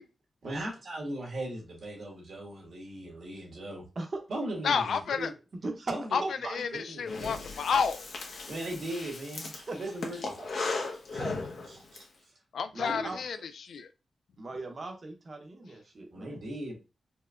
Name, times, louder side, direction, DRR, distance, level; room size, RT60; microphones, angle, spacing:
voice 1, 0.4-3.8 4.3-5.3 5.9-6.0 6.7-7.4 8.5-10.5 11.1-11.3 11.6-12.0 12.8-13.1 16.1-16.8, right 1 dB, 75° right, 1.6 m, -38 dB
voice 2, 4.6-5.3 6.1-6.2 6.5-8.0 12.5-13.9, left 6 dB, 90° left, 0.3 m, -30 dB
voice 3, 5.6-5.9 6.2-6.6 9.7-9.8 12.7-13.2 14.4-16.4, right 2 dB, 45° right, 0.8 m, -38 dB
Breathing, 7.1-12.0, left 3 dB, 75° left, 0.8 m, -37 dB
4.4 x 2.1 x 2.4 m
wide cardioid pair, 105°, 0 cm